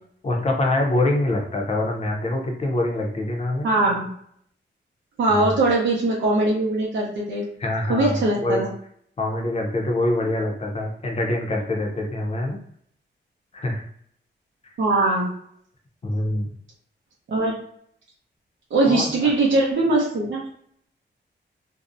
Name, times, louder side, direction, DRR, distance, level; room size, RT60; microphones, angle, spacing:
voice 1, 0.2-3.7 5.3-5.5 7.6-8.6 9.2-12.6 13.5-13.8 14.6-14.7 16.0-16.5 18.9-19.3, left 1 dB, 35° left, 1 dB, 0.5 m, -25 dB
voice 2, 3.6-4.0 5.2-7.5 7.9-8.7 14.8-15.3 17.3-17.5 18.7-20.4, right 2 dB, 85° right, -4 dB, 0.6 m, -21 dB
2.6 x 2.0 x 2.5 m, 0.66 s
wide cardioid pair, 170°, 19 cm